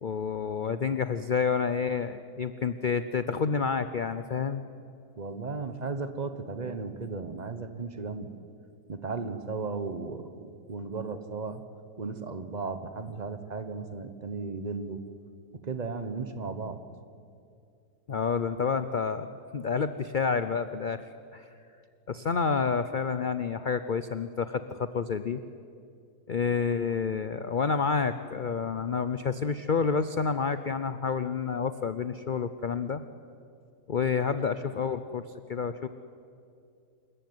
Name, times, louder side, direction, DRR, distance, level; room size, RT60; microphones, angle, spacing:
voice 1, 0.0-4.6 18.1-19.3 19.5-21.0 21.3-21.5 22.1-25.4 26.3-33.0 33.9-35.9, left 5 dB, 60° left, 11 dB, 0.5 m, -29 dB
voice 2, 5.2-8.3 8.9-11.6 12.0-15.0 15.5-16.8, right 4 dB, 30° right, 10 dB, 1.1 m, -35 dB
27.0 x 15.0 x 9.5 m, 2.5 s
omnidirectional pair, 1.7 m